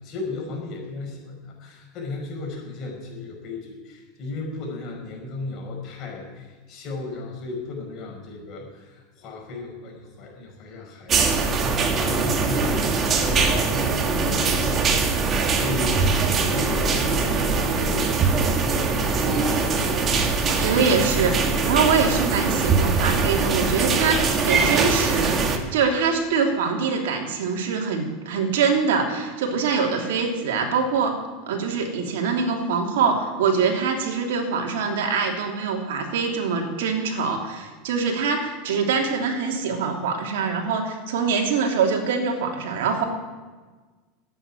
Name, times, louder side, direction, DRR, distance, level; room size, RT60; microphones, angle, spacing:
voice 1, 0.0-12.9 13.2-19.2, left 3 dB, 45° left, 0 dB, 5.4 m, -35 dB
sound 1, 11.1-25.6, right 4 dB, 30° right, 1.8 m, -22 dB
voice 2, 20.5-31.1 31.5-43.0, right 5 dB, 80° right, 2 dB, 2.9 m, -24 dB
11.0 x 9.1 x 9.9 m, 1.3 s
supercardioid pair, 120°, 0 cm